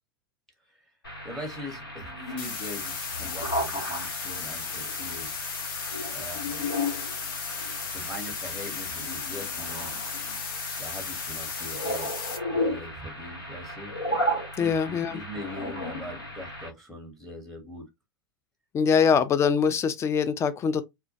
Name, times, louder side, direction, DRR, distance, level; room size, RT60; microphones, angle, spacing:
sound 1, 1.0-16.7, left 1 dB, 90° left, 1.1 m, -34 dB
voice 1, 1.2-5.3 6.1-6.7 7.8-9.9 10.8-12.1 12.5-13.9 14.6-17.9, left 1 dB, ahead, 0.7 m, -41 dB
sound 2, 2.4-12.4, left 6 dB, 55° left, 0.8 m, -35 dB
voice 2, 14.6-15.2 18.7-20.8, left 6 dB, 25° left, 0.4 m, -23 dB
2.2 x 2.1 x 2.7 m
hypercardioid pair, 90°, 12 cm